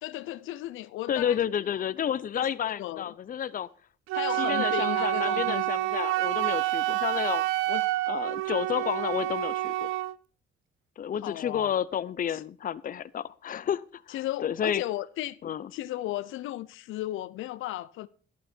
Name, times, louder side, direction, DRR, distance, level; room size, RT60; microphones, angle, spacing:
voice 1, 0.0-1.4 2.4-3.1 4.1-5.7 7.7-7.9 11.2-11.7 12.3-12.4 14.1-15.4 15.7-18.1, left 15 dB, 85° left, 0.6 m, -35 dB
voice 2, 1.1-3.7 4.4-7.4 8.1-9.9 11.0-14.8 15.4-15.7, left 9 dB, 45° left, 0.6 m, -31 dB
Wind instrument woodwind instrument, 4.1-10.2, right 17 dB, 90° right, 0.5 m, -28 dB
11.5 x 11.5 x 4.4 m
cardioid pair, 90°, 20 cm